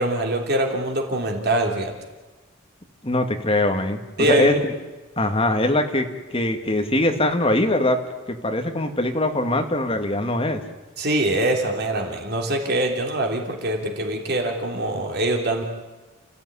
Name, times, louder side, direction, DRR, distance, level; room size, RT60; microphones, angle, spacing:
voice 1, 0.0-1.9 4.2-4.6 11.0-15.6, right 1 dB, 50° right, 2 dB, 3.3 m, -23 dB
voice 2, 3.0-4.0 4.3-4.7 5.2-8.0 8.3-10.6, left 1 dB, 25° left, 5 dB, 2.1 m, -22 dB
30.0 x 15.5 x 9.9 m, 1.2 s
head